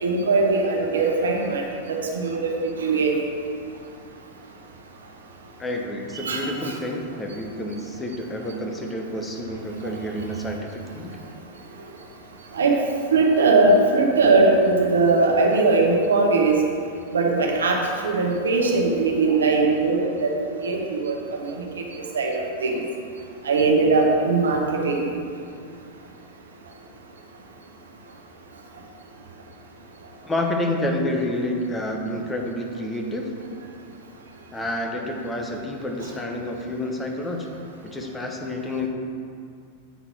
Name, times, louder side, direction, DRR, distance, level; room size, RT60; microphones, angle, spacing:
voice 1, 0.0-3.2 6.2-6.8 12.5-12.8 13.1-16.6 17.1-22.8 23.4-25.1, right 3 dB, 80° right, 1 dB, 0.9 m, -20 dB
voice 2, 5.6-11.2 30.3-33.3 34.5-37.5 37.8-38.9, left 1 dB, 15° left, 1 dB, 1.0 m, -29 dB
8.2 x 3.9 x 4.5 m, 2.3 s
hypercardioid pair, 95°, 0 cm